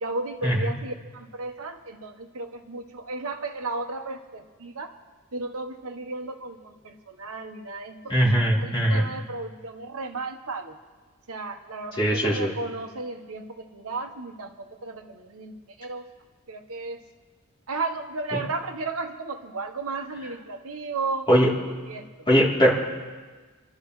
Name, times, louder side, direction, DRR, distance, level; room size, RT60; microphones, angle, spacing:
voice 1, 0.0-4.9 5.3-10.8 11.3-15.5 15.8-16.1 16.5-17.0 17.7-21.3 21.9-22.0, right 3 dB, 70° right, 5 dB, 1.1 m, -34 dB
voice 2, 8.1-9.0 12.0-12.5 18.3-18.4 21.3-21.5 22.3-22.7, equal, 25° left, -6 dB, 3.1 m, -20 dB
28.5 x 12.0 x 3.2 m, 1.4 s
head